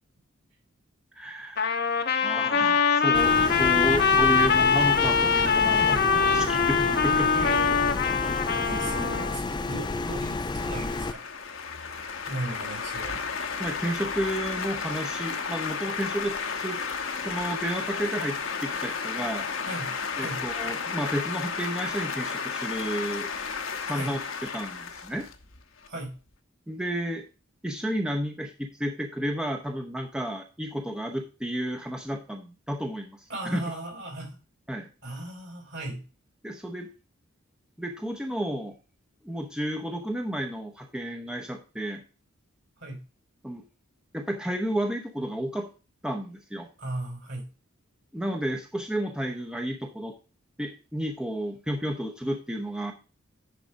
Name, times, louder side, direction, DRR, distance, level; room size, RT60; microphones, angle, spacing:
voice 1, 1.1-1.8 2.2-7.3 13.6-16.8 17.2-19.4 20.2-23.3 23.8-24.2 24.5-25.3 26.7-27.2 27.6-33.6 34.7-34.9 36.4-36.9 37.8-38.7 39.2-42.0 43.4-43.6 44.1-45.7 46.0-46.7 48.1-50.1 50.6-52.9, equal, 5° right, 3 dB, 0.7 m, -32 dB
Trumpet, 1.6-9.4, left 6 dB, 50° left, 0.9 m, -23 dB
sound 1, 3.1-11.1, left 3 dB, 20° left, 0.4 m, -31 dB
voice 2, 5.8-6.2 7.3-11.2 12.3-13.2 19.7-19.9 20.2-20.4 23.9-24.1 25.9-26.1 33.3-34.4 35.0-36.0 42.8-43.0 46.8-47.5, right 2 dB, 60° right, 2 dB, 4.6 m, -37 dB
sound 2, 9.3-25.9, left 5 dB, 70° left, 1.1 m, -33 dB
10.5 x 4.8 x 3.9 m, 0.33 s
head